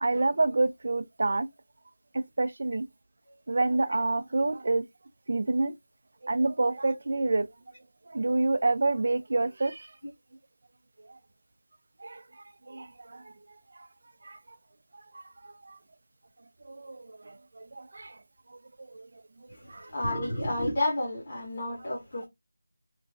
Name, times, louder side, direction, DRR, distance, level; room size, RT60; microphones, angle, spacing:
voice 1, 0.0-1.5 2.4-2.9 3.5-4.8 5.3-5.7 6.2-7.5 8.1-9.9 12.0-12.2 12.7-13.2 14.3-14.4 15.7-15.8 16.7-18.1 18.9-19.1 19.7-19.9, right 2 dB, 45° right, 0.4 m, -27 dB
voice 2, 19.5-22.3, left 1 dB, 35° left, 0.9 m, -31 dB
3.0 x 2.4 x 2.4 m
figure-of-eight pair, 170°, 0 cm